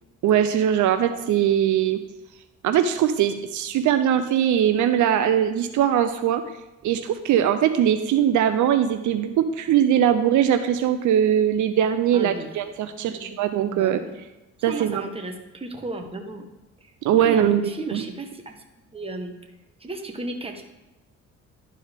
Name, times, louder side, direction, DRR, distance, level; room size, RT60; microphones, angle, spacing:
voice 1, 0.2-2.0 2.6-6.4 6.8-14.0 14.6-15.0 17.0-18.0, right 10 dB, 75° right, 9 dB, 0.6 m, -21 dB
voice 2, 12.1-12.5 13.0-13.4 13.7-14.2 14.7-16.5 16.8-16.9 17.2-18.5 18.9-19.4 19.8-20.6, right 2 dB, 20° right, 4 dB, 1.2 m, -34 dB
11.5 x 4.6 x 3.5 m, 1.0 s
cardioid pair, 90°, 30 cm